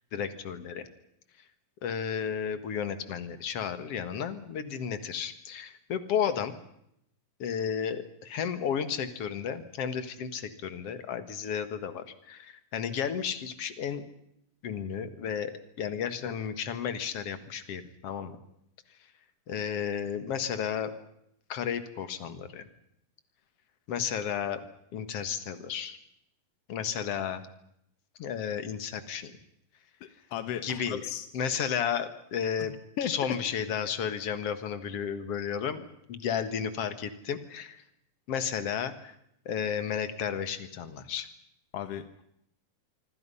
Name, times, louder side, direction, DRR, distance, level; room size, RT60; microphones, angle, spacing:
voice 1, 0.1-0.9 1.8-6.6 7.4-14.0 14.6-15.5 15.8-18.4 19.5-20.9 21.5-22.7 23.9-24.6 24.9-26.0 26.7-27.5 28.2-29.3 30.6-31.0 31.3-32.7 33.1-37.8 38.3-39.1 39.5-41.3, left 7 dB, 50° left, 11 dB, 2.1 m, -33 dB
voice 2, 30.0-31.3 32.6-33.1 41.7-42.0, left 10 dB, 70° left, 10 dB, 1.5 m, -36 dB
25.5 x 25.0 x 5.6 m, 0.75 s
omnidirectional pair, 4.1 m